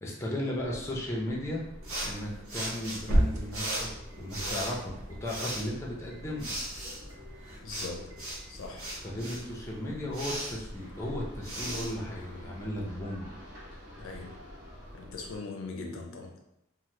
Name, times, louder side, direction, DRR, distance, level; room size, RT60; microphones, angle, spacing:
voice 1, 0.0-1.6 2.0-3.9 4.2-4.9 5.2-6.5 9.0-13.3 15.8-16.0, left 1 dB, 15° left, -3 dB, 0.5 m, -35 dB
sound 1, 0.5-15.4, equal, 55° right, 1.0 m, -47 dB
sound 2, 1.8-12.8, right 1 dB, 85° right, 0.9 m, -39 dB
sound 3, 2.7-9.1, equal, 70° right, 0.5 m, -35 dB
voice 2, 7.6-8.2 8.5-8.9 14.0-14.4 14.9-16.4, left 3 dB, 65° left, 2 dB, 0.4 m, -41 dB
2.8 x 2.1 x 3.1 m, 0.82 s
head